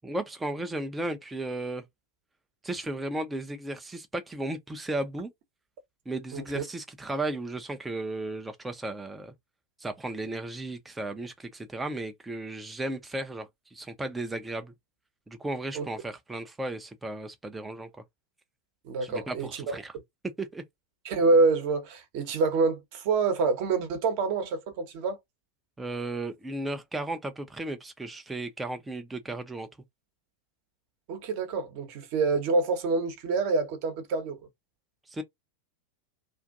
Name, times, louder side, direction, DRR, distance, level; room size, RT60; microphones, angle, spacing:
voice 1, 0.0-1.8 2.6-5.3 6.1-9.3 9.8-14.7 15.3-17.9 19.0-19.9 20.4-20.6 25.8-29.7 35.1-35.2, right 2 dB, 10° right, 0.5 m, -35 dB
voice 2, 6.3-6.6 15.7-15.9 18.8-19.8 21.0-25.2 31.1-34.4, right 3 dB, 45° right, 0.9 m, -26 dB
2.5 x 2.4 x 2.4 m
figure-of-eight pair, 90°, 0 cm